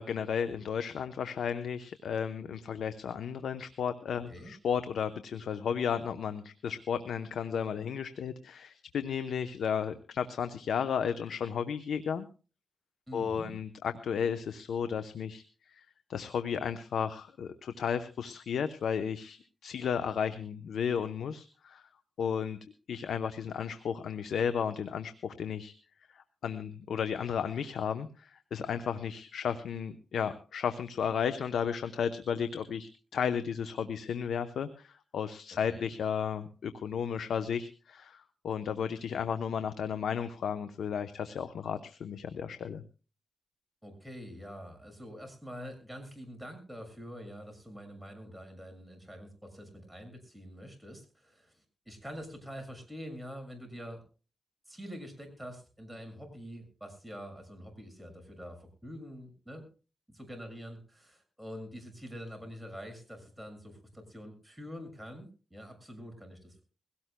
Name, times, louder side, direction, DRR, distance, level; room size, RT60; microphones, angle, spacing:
voice 1, 0.0-12.3 13.1-15.4 15.7-21.8 22.2-22.6 22.9-25.7 26.1-42.8, left 7 dB, 85° left, 10 dB, 0.8 m, -33 dB
voice 2, 13.1-13.6 35.7-35.8 43.8-51.5 51.8-54.0 54.7-59.7 60.1-66.6, equal, 5° right, 4 dB, 6.5 m, -45 dB
22.0 x 17.5 x 2.2 m, 0.35 s
cardioid pair, 65°, 0 cm